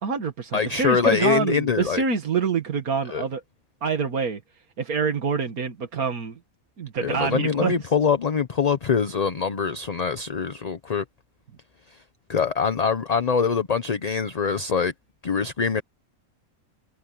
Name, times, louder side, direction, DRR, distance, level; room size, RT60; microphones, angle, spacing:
voice 1, 0.0-3.4 3.8-4.4 4.8-6.4 6.8-7.7, right 5 dB, 85° right, 2.2 m, -26 dB
voice 2, 0.5-2.0 3.1-3.2 7.0-11.0 12.3-14.9 15.2-15.8, left 6 dB, 35° left, 0.7 m, -24 dB
omnidirectional pair, 1.5 m